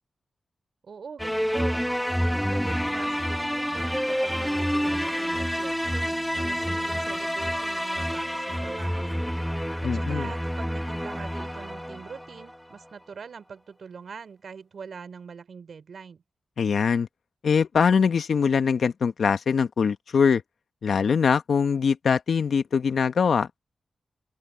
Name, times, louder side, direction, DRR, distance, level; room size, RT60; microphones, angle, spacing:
voice 1, 0.8-1.9 2.2-9.2 9.8-16.2, right 6 dB, 75° right, 3.5 m, -43 dB
sound 1, 1.2-12.5, equal, ahead, 1.8 m, -28 dB
voice 2, 9.8-10.3 16.6-17.1 17.4-20.4 20.8-23.5, left 6 dB, 75° left, 1.5 m, -22 dB
open air
cardioid pair, 45°, 0 cm